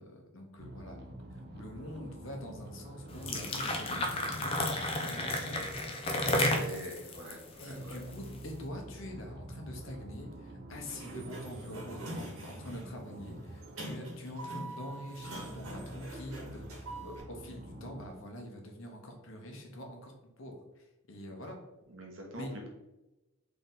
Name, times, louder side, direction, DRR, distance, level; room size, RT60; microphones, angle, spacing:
voice 1, 0.0-5.7 6.2-6.5 7.6-21.6 22.3-22.5, left 1 dB, 65° left, 2 dB, 1.0 m, -45 dB
sound 1, 0.6-18.1, right 1 dB, 50° right, 0.5 m, -48 dB
sound 2, 3.1-8.4, left 1 dB, 25° left, 0.5 m, -32 dB
voice 2, 6.3-8.0 21.9-22.7, right 1 dB, 65° right, 0 dB, 1.1 m, -44 dB
Sliding door, 10.7-17.2, right 1 dB, 90° right, 1.4 m, -44 dB
4.0 x 3.4 x 3.9 m, 1.0 s
head